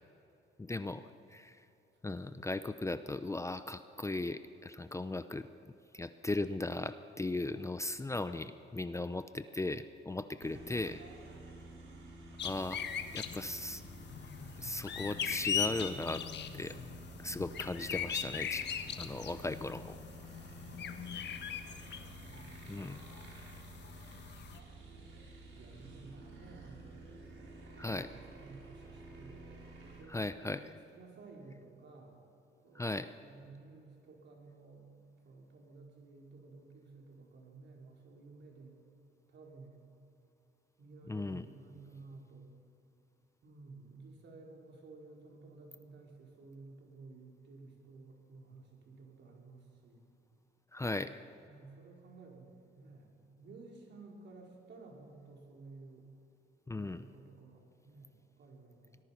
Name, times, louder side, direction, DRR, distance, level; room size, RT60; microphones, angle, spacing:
voice 1, 0.6-1.6 2.0-5.5 5.9-11.0 12.4-12.8 13.1-13.8 14.6-16.2 16.6-16.8 17.2-18.6 19.0-20.0 22.7-23.0 27.8-28.1 30.1-30.7 32.7-33.1 41.0-41.4 50.7-51.2 56.7-57.1, left 2 dB, 15° left, 12 dB, 0.7 m, -37 dB
voice 2, 2.0-2.5 11.3-11.9 20.6-22.9 23.7-24.0 25.5-27.0 27.8-29.6 29.9-32.2 32.6-32.9 33.2-34.9 35.2-38.8 39.3-39.8 40.8-42.5 43.4-50.0 51.4-56.1 56.7-59.0, right 3 dB, 60° right, 1 dB, 4.8 m, -54 dB
sound 1, 10.4-30.0, right 2 dB, 80° right, 5.1 m, -51 dB
sound 2, 12.4-24.6, left 8 dB, 60° left, 1.5 m, -40 dB
24.5 x 19.0 x 5.9 m, 2.8 s
cardioid pair, 90°, 20 cm